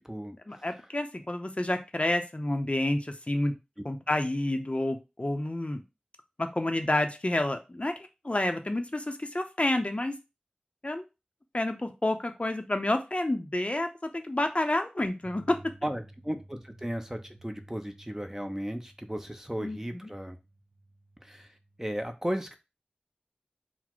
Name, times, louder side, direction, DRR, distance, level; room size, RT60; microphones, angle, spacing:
voice 1, 0.5-3.5 3.8-5.8 6.4-7.9 8.2-10.2 10.8-11.1 11.5-15.6 19.6-20.1, left 1 dB, 40° left, 6 dB, 0.6 m, -29 dB
sound 1, 15.2-22.0, right 1 dB, 75° right, 1.3 m, -54 dB
voice 2, 15.8-20.4 21.3-21.5 21.8-22.6, equal, 15° right, 6 dB, 0.6 m, -35 dB
3.9 x 2.1 x 4.5 m, 0.26 s
wide cardioid pair, 45°, 3 cm